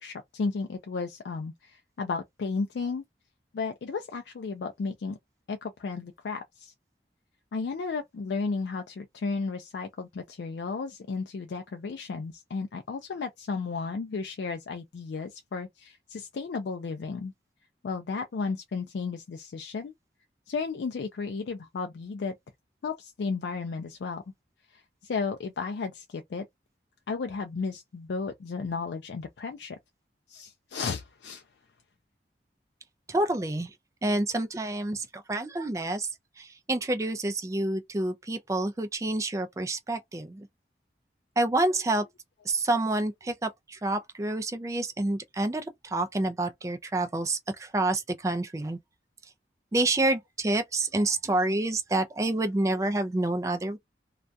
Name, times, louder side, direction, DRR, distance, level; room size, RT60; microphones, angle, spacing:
voice 1, 0.0-3.0 3.5-5.2 5.5-6.7 7.5-17.3 17.8-19.9 20.5-22.3 22.8-24.2 24.7-26.5 27.1-29.8 30.3-31.4, left 4 dB, 75° left, 0.4 m, -34 dB
voice 2, 33.1-33.7 34.0-36.1 36.4-40.5 41.4-42.0 42.5-48.8 49.7-53.8, right 2 dB, 20° right, 0.3 m, -28 dB
2.3 x 2.2 x 2.5 m
head